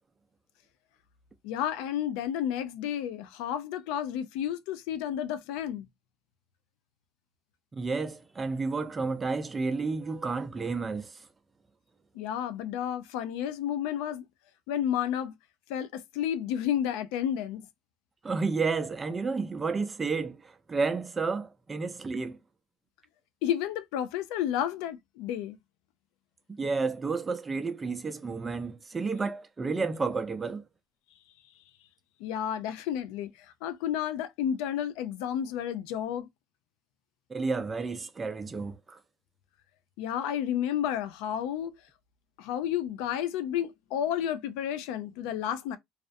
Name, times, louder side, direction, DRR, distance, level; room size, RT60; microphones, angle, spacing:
voice 1, 1.4-5.9 12.1-14.3 14.7-15.3 15.7-17.6 23.4-25.6 32.2-36.3 40.0-41.8 42.4-45.8, left 10 dB, 85° left, 0.3 m, -31 dB
voice 2, 7.7-11.3 18.2-22.4 26.6-30.6 37.3-39.0, right 4 dB, 20° right, 0.5 m, -31 dB
2.4 x 2.0 x 2.5 m
supercardioid pair, 105°, 0 cm